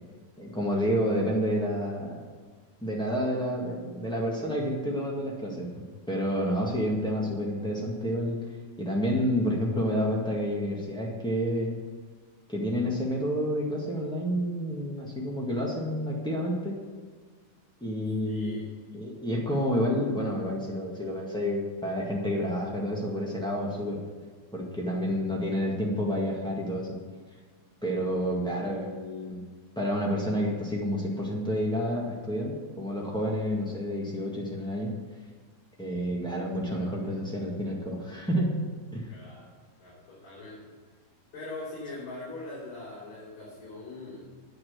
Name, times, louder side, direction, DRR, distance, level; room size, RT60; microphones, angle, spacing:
voice 1, 0.4-2.2 2.8-5.7 6.1-8.4 8.8-11.7 12.5-16.8 17.8-18.6 18.9-24.0 24.5-27.0 27.8-29.4 29.7-34.9 35.8-38.5 38.9-39.1, equal, 5° left, -4 dB, 0.3 m, -29 dB
voice 2, 18.2-18.7 39.1-39.5 39.8-40.7 41.3-44.3, left 2 dB, 60° left, -9 dB, 4.7 m, -41 dB
9.7 x 5.9 x 8.0 m, 1.5 s
omnidirectional pair, 3.7 m